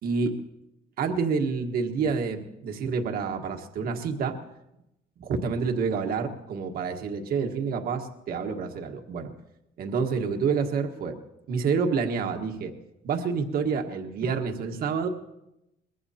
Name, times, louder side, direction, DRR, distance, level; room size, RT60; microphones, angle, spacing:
voice 1, 0.0-0.4 1.0-4.4 5.2-9.3 9.8-11.2 11.5-12.7 13.0-15.1, right 5 dB, 60° right, 4 dB, 1.5 m, -28 dB
23.0 x 20.5 x 2.9 m, 0.88 s
cardioid pair, 110°, 17 cm